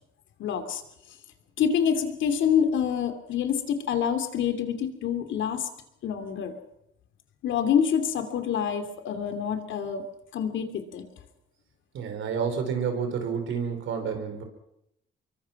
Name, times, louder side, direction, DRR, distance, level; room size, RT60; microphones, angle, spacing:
voice 1, 0.4-0.8 1.6-5.7 6.0-6.6 7.4-10.0 10.3-11.0, left 8 dB, 75° left, 7 dB, 3.0 m, -26 dB
voice 2, 11.9-14.4, right 6 dB, 75° right, 6 dB, 5.0 m, -29 dB
25.0 x 22.5 x 6.0 m, 0.78 s
cardioid pair, 90°, 20 cm